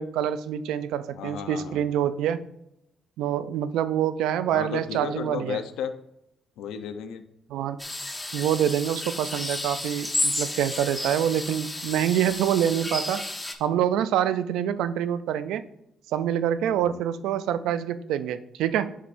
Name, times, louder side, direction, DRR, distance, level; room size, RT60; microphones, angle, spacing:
voice 1, 0.0-2.5 3.2-5.6 7.5-7.9 8.3-13.3 13.6-15.6 16.1-18.9, right 10 dB, 90° right, 13 dB, 0.4 m, -26 dB
voice 2, 1.1-1.8 4.5-5.9 6.6-7.2 16.7-17.0, left 7 dB, 85° left, 9 dB, 0.6 m, -34 dB
sound 1, 7.8-13.5, left 1 dB, 10° left, 0.9 m, -32 dB
7.4 x 6.5 x 2.6 m, 0.80 s
cardioid pair, 90°, 0 cm